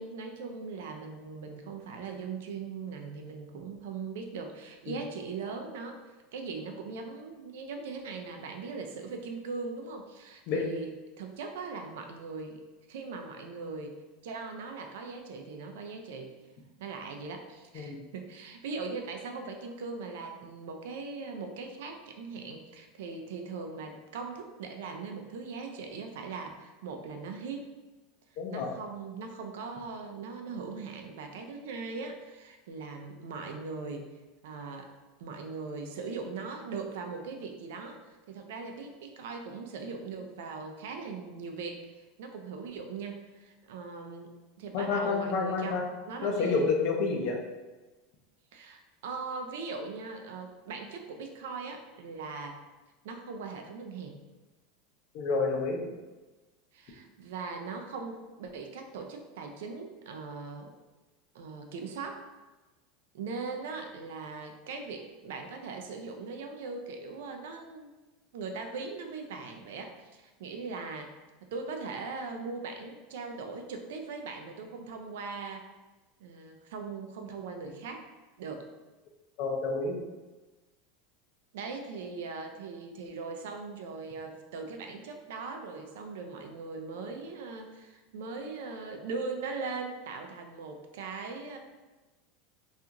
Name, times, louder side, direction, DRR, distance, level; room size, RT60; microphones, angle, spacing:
voice 1, 0.0-6.0 6.3-10.9 11.2-12.6 12.9-14.0 14.2-16.3 16.8-27.7 28.5-34.1 34.4-34.9 35.2-45.8 46.1-46.7 48.5-52.6 53.0-54.2 56.7-60.7 61.3-62.2 63.1-67.9 68.3-71.1 71.5-75.6 76.2-78.1 78.4-78.7 81.5-91.6, right 4 dB, 85° right, 4 dB, 0.4 m, -40 dB
voice 2, 28.4-28.7 44.7-45.8 46.2-47.4 55.1-55.8 79.4-80.0, left 4 dB, 55° left, 1 dB, 0.5 m, -29 dB
2.8 x 2.4 x 2.4 m, 1.2 s
supercardioid pair, 150°, 0 cm